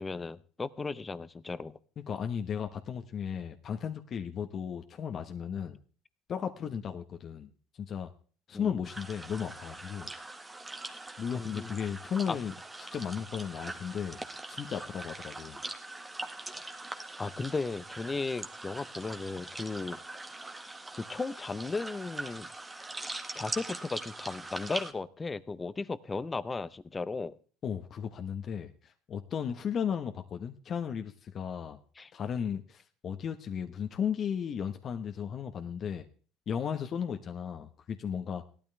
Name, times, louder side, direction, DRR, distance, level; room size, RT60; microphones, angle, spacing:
voice 1, 0.0-1.7 8.5-8.8 11.3-11.8 12.3-12.4 17.2-20.0 21.0-22.5 23.3-27.3 32.0-32.1, left 3 dB, 20° left, 16 dB, 0.9 m, -36 dB
voice 2, 2.1-5.8 6.3-7.5 7.9-8.1 8.5-10.1 11.2-12.5 12.9-14.2 14.5-15.6 27.6-31.8 32.1-36.1 36.5-38.4, left 7 dB, 40° left, 6 dB, 1.2 m, -35 dB
sound 1, 8.8-24.9, right 2 dB, 15° right, 1.7 m, -42 dB
17.5 x 12.5 x 3.4 m, 0.41 s
supercardioid pair, 100°, 0 cm